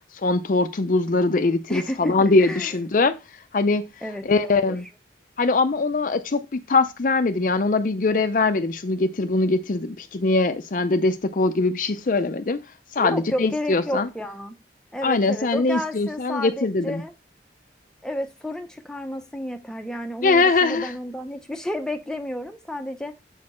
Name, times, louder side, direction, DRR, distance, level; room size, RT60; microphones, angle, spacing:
voice 1, 0.2-3.2 3.5-3.8 4.2-4.9 5.4-12.6 12.9-14.1 15.0-17.0 20.2-20.9, left 3 dB, 45° left, 0.5 m, -22 dB
voice 2, 1.7-2.7 4.0-4.8 13.0-14.5 14.9-17.1 18.0-23.1, left 1 dB, 5° left, 0.8 m, -31 dB
7.2 x 4.3 x 4.3 m
head